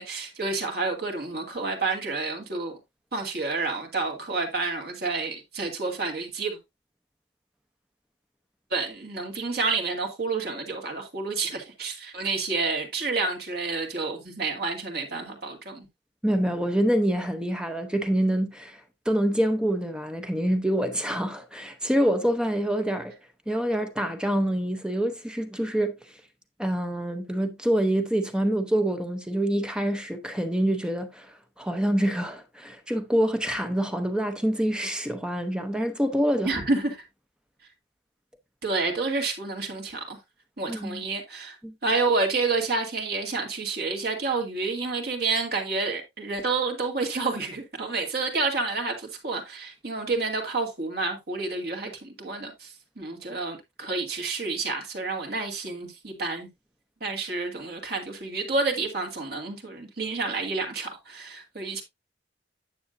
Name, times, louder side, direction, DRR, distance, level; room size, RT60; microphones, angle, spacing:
voice 1, 0.0-2.8 3.1-6.6 8.7-15.9 36.4-37.0 38.6-40.2 40.6-41.6 41.8-56.5 57.0-61.8, right 3 dB, 60° right, 2.5 m, -29 dB
voice 2, 16.2-18.8 19.1-23.1 23.5-25.9 26.6-36.6 40.7-41.0 41.6-41.7, right 1 dB, 5° right, 0.7 m, -26 dB
9.7 x 7.1 x 2.6 m
head